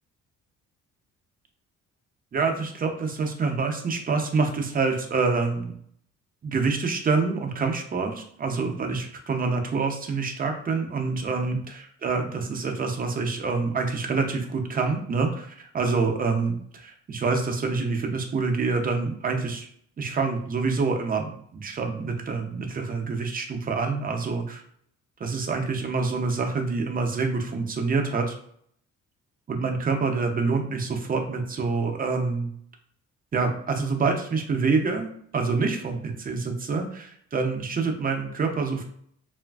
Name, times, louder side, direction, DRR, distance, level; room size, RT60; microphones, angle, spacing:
voice 1, 2.3-5.7 6.4-11.6 12.0-19.7 20.0-24.6 25.2-28.3 29.5-32.5 33.3-38.8, right 4 dB, 30° right, 3 dB, 0.5 m, -26 dB
3.0 x 2.5 x 2.3 m, 0.65 s
cardioid pair, 90°, 30 cm